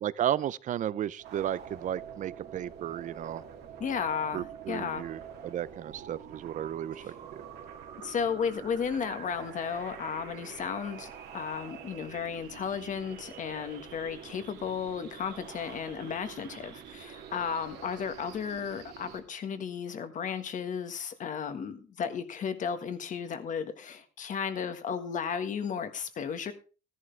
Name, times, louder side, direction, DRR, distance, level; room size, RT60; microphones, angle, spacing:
voice 1, 0.0-3.4 4.3-7.4, right 11 dB, 50° right, 0.5 m, -34 dB
sound 1, 1.2-19.2, right 8 dB, 75° right, 2.4 m, -46 dB
voice 2, 3.8-5.1 7.0-7.1 8.0-26.5, left 7 dB, 50° left, 1.5 m, -34 dB
13.5 x 11.0 x 3.4 m
cardioid pair, 110°, 17 cm